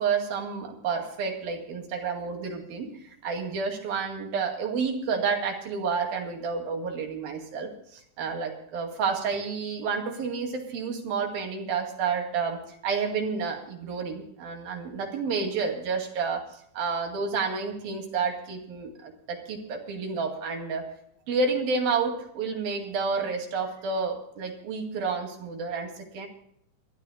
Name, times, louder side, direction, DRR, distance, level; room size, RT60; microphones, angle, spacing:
voice 1, 0.0-2.9 3.2-16.5 16.7-20.8 21.3-26.3, right 5 dB, 85° right, 3 dB, 4.0 m, -30 dB
29.5 x 12.5 x 2.2 m, 0.71 s
omnidirectional pair, 4.1 m